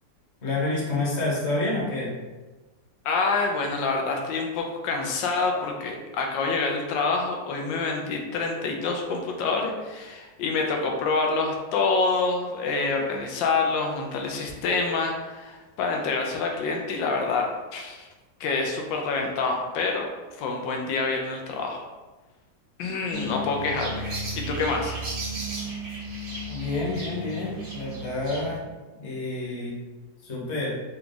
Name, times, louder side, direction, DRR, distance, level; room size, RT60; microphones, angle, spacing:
voice 1, 0.4-2.1 26.5-28.6 28.9-29.7 30.2-30.7, left 2 dB, 45° left, -5 dB, 1.2 m, -28 dB
voice 2, 3.0-18.1 18.4-20.1 20.4-21.8 22.8-25.0, left 4 dB, 85° left, 2 dB, 1.3 m, -27 dB
sound 1, 23.1-28.6, right 1 dB, 40° right, 0.9 m, -34 dB
3.9 x 2.3 x 3.8 m, 1.2 s
omnidirectional pair, 2.0 m